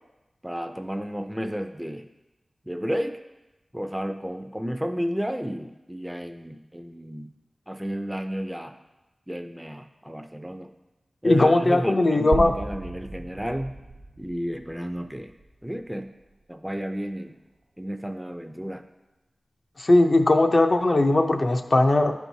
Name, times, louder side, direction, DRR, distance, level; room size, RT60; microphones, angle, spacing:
voice 1, 0.4-2.1 2.7-3.2 3.7-7.3 7.7-8.7 9.3-10.7 11.2-13.7 14.2-15.3 15.6-16.1 16.5-17.3 17.8-18.8, equal, 5° right, 6 dB, 0.4 m, -32 dB
voice 2, 11.2-12.5 19.8-22.1, left 2 dB, 50° left, 5 dB, 0.5 m, -19 dB
sound 1, 12.3-16.3, right 2 dB, 70° right, 0.6 m, -35 dB
11.5 x 4.5 x 2.7 m, 1.0 s
wide cardioid pair, 90°, 0 cm